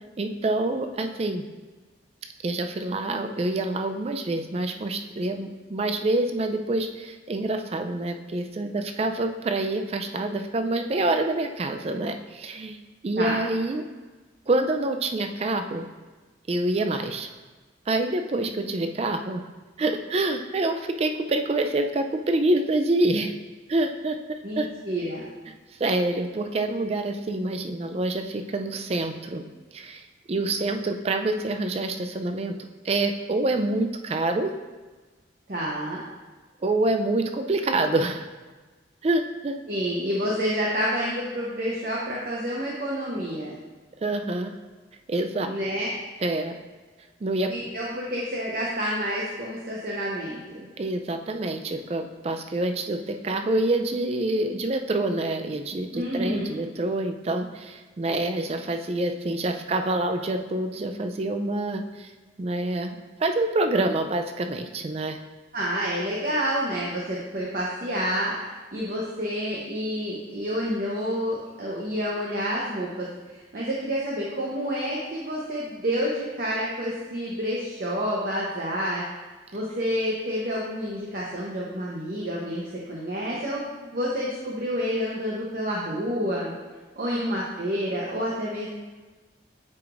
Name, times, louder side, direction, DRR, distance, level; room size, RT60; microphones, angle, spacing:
voice 1, 0.2-1.4 2.4-12.8 13.0-13.8 14.5-15.9 16.5-17.3 17.9-19.4 19.8-23.3 23.7-24.7 25.8-29.4 29.7-32.5 32.8-34.5 36.6-38.3 39.0-39.6 44.0-44.5 45.1-45.5 46.2-46.5 47.2-47.5 50.8-62.1 62.4-65.2 87.1-87.2, right 2 dB, 30° right, 6 dB, 0.3 m, -26 dB
voice 2, 24.4-25.3 35.5-36.0 39.7-43.5 45.4-45.9 47.5-50.7 55.9-56.6 65.5-68.3 68.7-73.1 73.3-79.0 79.5-83.6 83.9-86.5 87.0-88.7, equal, 50° right, -5 dB, 0.8 m, -29 dB
8.2 x 4.9 x 2.5 m, 1.3 s
head